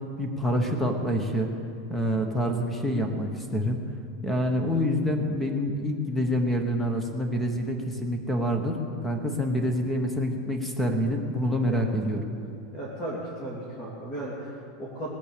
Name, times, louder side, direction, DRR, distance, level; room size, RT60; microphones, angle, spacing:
voice 1, 0.2-1.5 1.9-3.8 4.2-12.2, equal, 5° left, 4 dB, 1.2 m, -27 dB
voice 2, 12.7-15.1, right 1 dB, 25° left, -6 dB, 2.3 m, -36 dB
20.0 x 8.3 x 6.8 m, 2.5 s
supercardioid pair, 180°, 2 cm